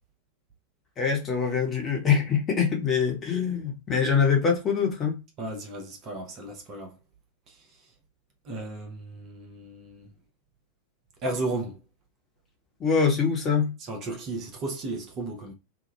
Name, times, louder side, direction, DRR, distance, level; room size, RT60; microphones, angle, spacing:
voice 1, 1.0-5.2 12.8-13.7, left 6 dB, 25° left, 1.0 m, -24 dB
voice 2, 5.4-6.9 8.5-10.1 11.2-11.7 13.9-15.5, right 2 dB, 35° right, 0.8 m, -34 dB
2.9 x 2.2 x 3.1 m
figure-of-eight pair, 90°, 0 cm